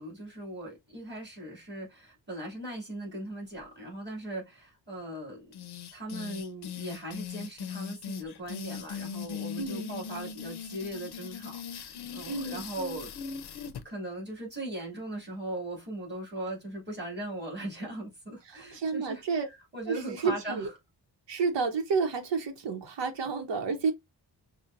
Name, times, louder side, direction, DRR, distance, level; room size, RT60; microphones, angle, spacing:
voice 1, 0.0-5.5 5.9-13.1 13.5-20.7, right 1 dB, 25° right, 2.2 m, -39 dB
sound 1, 5.5-13.8, left 6 dB, 65° left, 0.6 m, -39 dB
voice 2, 9.6-10.0 12.3-12.7 18.5-19.5 19.9-20.7 21.3-23.9, right 5 dB, 80° right, 0.9 m, -30 dB
5.6 x 2.1 x 2.5 m
wide cardioid pair, 140°, 42 cm